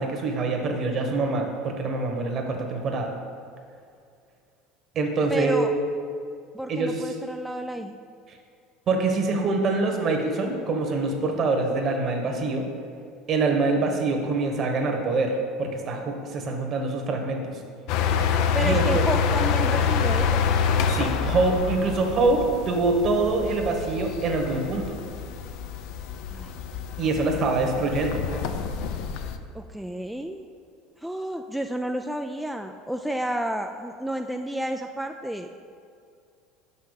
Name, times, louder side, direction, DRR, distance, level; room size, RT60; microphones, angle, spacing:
voice 1, 0.0-3.1 4.9-5.7 6.7-6.9 8.9-12.6 13.3-17.4 18.6-19.0 20.8-24.9 27.0-28.2, right 3 dB, 45° right, 3 dB, 1.3 m, -25 dB
voice 2, 5.3-5.7 6.5-8.0 18.5-20.4 26.3-26.5 29.5-30.5 31.0-35.6, right 1 dB, ahead, 4 dB, 0.3 m, -31 dB
sound 1, 17.9-29.4, left 6 dB, 70° left, 0.5 m, -27 dB
5.9 x 5.7 x 6.5 m, 2.3 s
supercardioid pair, 100°, 0 cm